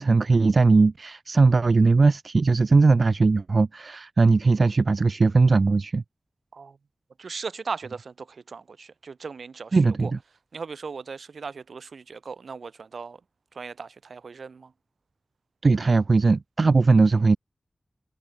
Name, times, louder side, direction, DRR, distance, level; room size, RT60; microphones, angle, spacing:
voice 1, 0.0-6.0 9.7-10.2 15.6-17.4, right 3 dB, 55° right, 1.7 m, -19 dB
voice 2, 7.2-10.1 10.5-13.2 13.5-14.7, right 5 dB, 90° right, 4.7 m, -38 dB
wide cardioid pair, 90°, 0 cm